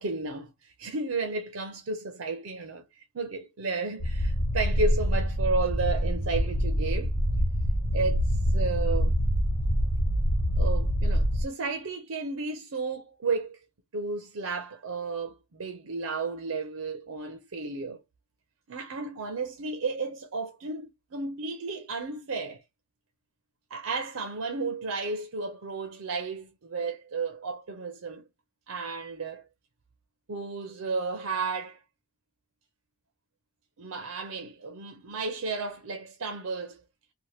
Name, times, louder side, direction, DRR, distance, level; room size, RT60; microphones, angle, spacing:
voice 1, 0.0-7.2 7.9-8.2 8.5-9.1 10.6-13.6 13.9-18.0 18.7-22.6 23.7-28.2 28.7-29.4 30.3-31.8 33.8-36.8, right 3 dB, 80° right, 0.6 m, -33 dB
sound 1, 4.0-11.4, equal, 85° left, 1.3 m, -25 dB
2.8 x 2.2 x 3.1 m
head